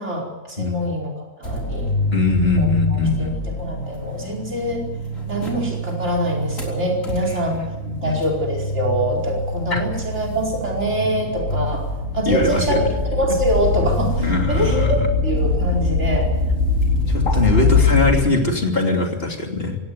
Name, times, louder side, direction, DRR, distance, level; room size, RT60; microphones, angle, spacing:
voice 1, 0.0-1.9 2.5-3.3 3.6-4.8 5.3-7.6 8.0-11.9 12.1-16.3 17.4-17.9, equal, 60° right, 2 dB, 5.1 m, -24 dB
sound 1, 1.4-18.2, equal, 85° left, 4.4 m, -28 dB
voice 2, 2.1-3.4 7.5-8.2 9.7-9.8 12.3-12.9 14.2-14.9 17.1-19.8, left 2 dB, 45° left, 2 dB, 3.1 m, -21 dB
sound 2, 11.9-18.2, left 4 dB, 75° right, 3.7 m, -21 dB
18.0 x 16.0 x 9.5 m, 1.1 s
omnidirectional pair, 1.3 m